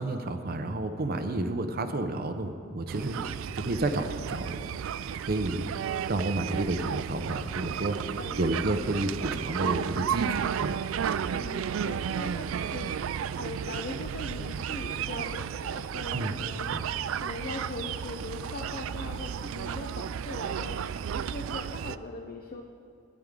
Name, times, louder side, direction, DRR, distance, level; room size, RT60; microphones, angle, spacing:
voice 1, 0.0-3.3 3.6-4.6 5.2-5.7 6.1-8.1 8.4-10.8 16.1-16.4 16.7-16.8, right 2 dB, 50° right, 8 dB, 0.7 m, -31 dB
sound 1, 2.9-22.0, right 8 dB, 75° right, 0.3 m, -33 dB
voice 2, 8.2-9.3 11.3-22.6, left 2 dB, 45° left, 2 dB, 0.7 m, -41 dB
15.5 x 10.0 x 3.8 m, 2.6 s
head